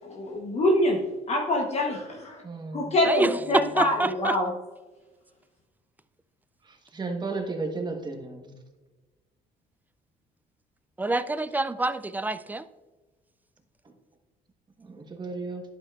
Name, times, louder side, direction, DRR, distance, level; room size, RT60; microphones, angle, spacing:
voice 1, 0.0-1.0 1.3-2.4 2.7-4.5, left 1 dB, 40° left, 1 dB, 1.0 m, -25 dB
voice 2, 2.4-2.9 3.4-3.7 6.6-8.5 14.8-15.6, right 3 dB, 25° right, 3 dB, 1.2 m, -34 dB
voice 3, 3.0-4.4 11.0-12.6, right 2 dB, 10° right, 14 dB, 0.3 m, -26 dB
11.5 x 5.4 x 2.4 m, 1.2 s
cardioid pair, 110°, 17 cm